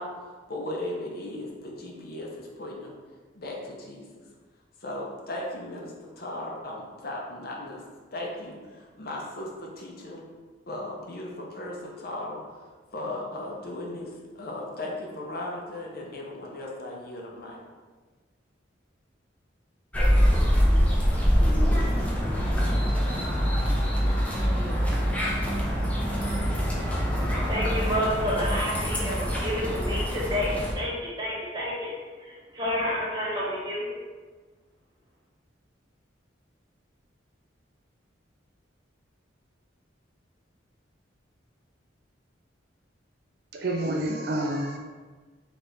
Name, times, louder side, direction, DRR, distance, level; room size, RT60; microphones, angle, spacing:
voice 1, 0.0-2.9 3.3-4.0 4.8-7.8 8.1-10.2 10.7-17.6, left 1 dB, 50° left, -1 dB, 0.7 m, -37 dB
sound 1, 19.9-30.7, equal, 5° left, 0.6 m, -24 dB
voice 2, 27.5-31.9 32.2-33.9, equal, 20° right, -6 dB, 1.2 m, -29 dB
voice 3, 43.5-44.8, right 1 dB, 55° right, 1 dB, 0.5 m, -28 dB
3.5 x 3.4 x 3.9 m, 1.4 s
head